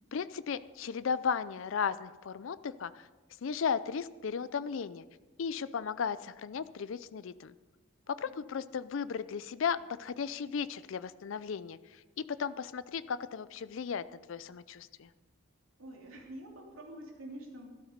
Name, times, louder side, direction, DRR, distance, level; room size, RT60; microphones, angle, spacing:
voice 1, 0.1-3.1 3.4-5.0 5.4-7.5 8.1-15.1, left 6 dB, 70° left, 15 dB, 0.4 m, -35 dB
voice 2, 15.8-17.7, right 1 dB, 75° right, 0 dB, 3.0 m, -46 dB
13.0 x 12.0 x 5.2 m, 1.2 s
head